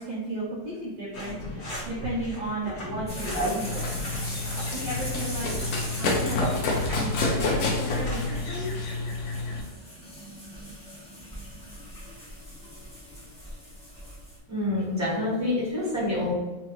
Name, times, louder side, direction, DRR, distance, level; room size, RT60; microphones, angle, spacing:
voice 1, 0.0-1.3 1.6-4.0 4.7-5.5 5.9-6.4 6.9-8.7, right 1 dB, 65° right, -7 dB, 1.2 m, -34 dB
sound 1, 1.1-8.7, equal, 40° left, 1.1 m, -36 dB
sound 2, 3.1-14.4, equal, 10° left, 0.3 m, -41 dB
Run, 3.6-9.6, left 3 dB, 90° left, 0.8 m, -29 dB
voice 2, 14.5-16.3, left 2 dB, 10° right, -8 dB, 0.7 m, -27 dB
4.2 x 2.3 x 3.0 m, 1.1 s
omnidirectional pair, 2.4 m